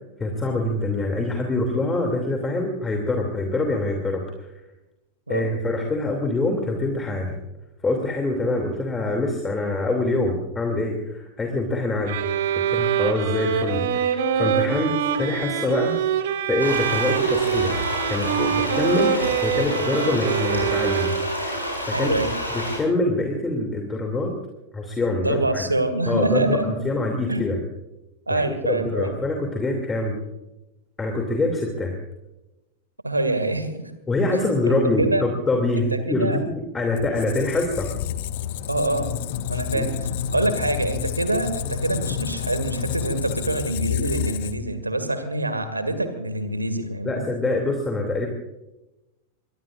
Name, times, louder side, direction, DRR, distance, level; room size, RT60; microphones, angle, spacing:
voice 1, 0.2-4.5 5.3-7.4 7.8-12.3 12.7-16.0 16.5-21.1 21.9-22.1 22.5-24.3 24.7-25.7 26.1-27.6 28.3-28.4 28.7-30.2 31.0-32.0 34.1-37.9 39.7-39.9 47.0-48.3, left 2 dB, 15° left, 2 dB, 2.7 m, -25 dB
sound 1, 12.1-21.5, right 8 dB, 55° right, 1.9 m, -24 dB
sound 2, 16.6-22.8, equal, 90° left, 6.9 m, -29 dB
voice 2, 21.9-22.3 25.2-26.8 27.3-27.4 28.3-29.2 33.0-33.9 34.3-34.5 35.0-35.3 35.8-36.4 38.7-39.1 39.5-47.2, right 2 dB, 85° right, 9 dB, 2.1 m, -25 dB
Squeak, 37.0-44.8, left 9 dB, 50° left, 1.1 m, -29 dB
24.0 x 22.5 x 2.5 m, 0.97 s
figure-of-eight pair, 90°, 0 cm